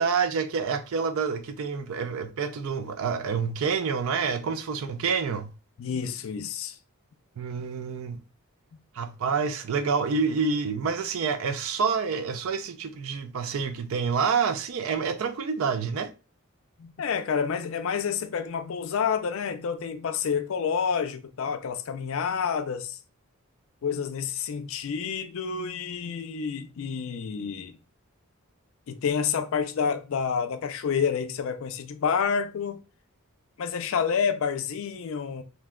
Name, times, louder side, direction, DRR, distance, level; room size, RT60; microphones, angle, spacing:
voice 1, 0.0-5.5 7.4-8.2 8.9-16.1, right 5 dB, 65° right, 0.4 m, -28 dB
voice 2, 5.8-6.8 16.8-23.0 23.8-27.8 28.9-32.8 33.6-35.4, left 6 dB, 60° left, 0.4 m, -29 dB
2.6 x 2.2 x 3.5 m
head